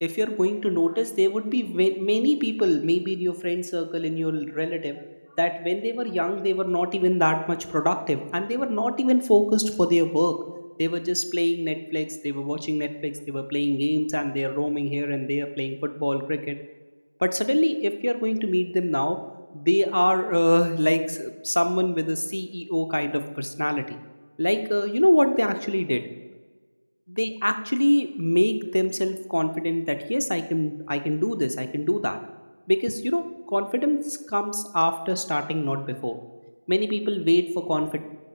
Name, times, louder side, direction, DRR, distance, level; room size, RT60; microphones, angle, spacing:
voice 1, 0.0-5.0 5.4-10.4 10.8-16.6 17.2-19.2 19.5-24.0 24.4-26.0 27.1-32.2 32.7-33.2 33.5-36.2 36.7-38.0, left 1 dB, 35° left, 8 dB, 0.4 m, -24 dB
10.0 x 4.7 x 4.1 m, 1.4 s
figure-of-eight pair, 180°, 0 cm